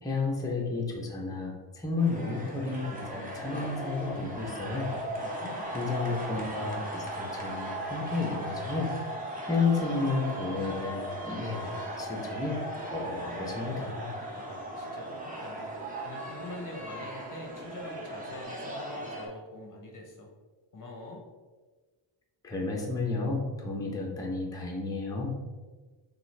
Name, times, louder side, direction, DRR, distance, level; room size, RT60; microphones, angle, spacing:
voice 1, 0.0-4.9 5.7-14.1 22.4-25.3, left 3 dB, 10° left, -1 dB, 0.6 m, -32 dB
sound 1, 2.0-19.3, equal, 20° right, 0.9 m, -38 dB
sound 2, 4.7-18.4, right 5 dB, 85° right, 0.7 m, -46 dB
voice 2, 5.1-5.8 14.3-15.7 16.0-20.3 20.7-21.3, left 2 dB, 45° left, 2 dB, 0.7 m, -44 dB
6.0 x 2.4 x 3.2 m, 1.3 s
wide cardioid pair, 125°, 46 cm